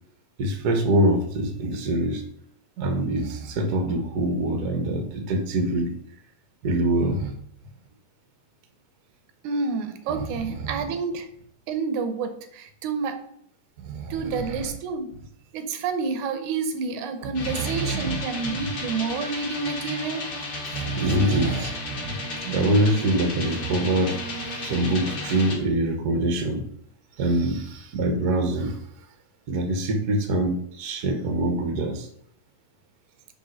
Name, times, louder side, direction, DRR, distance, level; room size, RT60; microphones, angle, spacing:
voice 1, 0.4-2.2 2.8-5.9 6.6-7.3 10.1-10.9 13.8-14.7 17.2-18.2 18.4-18.7 20.7-26.6 27.2-28.8 29.5-32.1, right 1 dB, 60° right, 4 dB, 1.0 m, -25 dB
voice 2, 9.4-11.3 11.7-13.2 14.1-15.1 15.5-20.3, right 4 dB, 85° right, 8 dB, 2.3 m, -29 dB
sound 1, 17.3-25.5, left 2 dB, 35° left, 1.9 m, -33 dB
7.2 x 3.5 x 6.4 m, 0.68 s
omnidirectional pair, 3.4 m